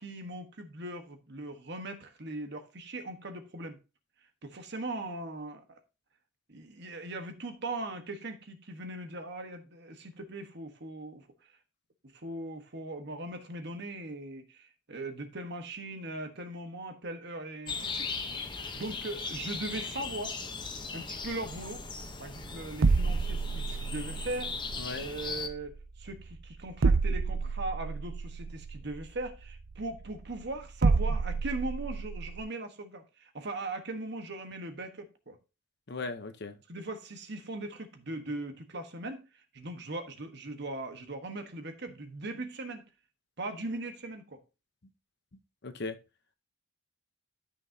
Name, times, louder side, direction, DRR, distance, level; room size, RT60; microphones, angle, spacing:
voice 1, 0.0-3.8 4.4-5.8 6.5-11.3 12.1-18.4 18.7-20.4 20.9-21.8 22.2-24.6 24.9-35.4 36.7-42.8 43.4-44.4, right 2 dB, 55° right, 1.4 m, -39 dB
sound 1, 17.7-25.5, left 4 dB, 20° left, 0.9 m, -38 dB
sound 2, 21.2-32.4, right 4 dB, 85° right, 0.6 m, -30 dB
voice 2, 35.9-36.5 45.6-46.0, left 3 dB, 55° left, 0.9 m, -37 dB
13.0 x 6.2 x 2.8 m
head